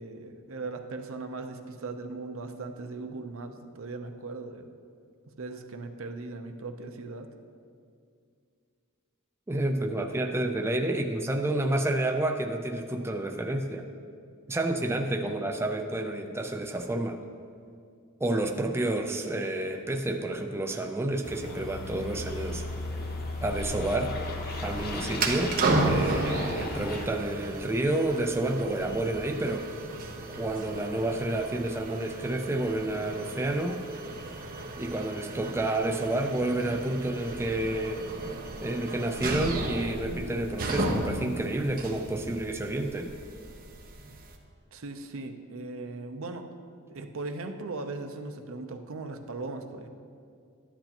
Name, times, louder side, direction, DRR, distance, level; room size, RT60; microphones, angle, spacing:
voice 1, 0.0-4.7 5.4-7.3 44.7-46.5 46.9-49.9, right 3 dB, 65° right, 6 dB, 0.7 m, -38 dB
voice 2, 9.5-13.8 14.5-17.2 18.2-22.6 23.4-24.1 24.6-29.7 30.3-33.9 34.8-38.0 38.6-43.1, right 1 dB, 10° right, 3 dB, 0.4 m, -29 dB
sound 1, 21.2-27.1, left 1 dB, 45° left, 1.0 m, -35 dB
sound 2, 24.5-44.4, right 2 dB, 45° right, 0.9 m, -34 dB
13.0 x 10.5 x 2.9 m, 2.3 s
head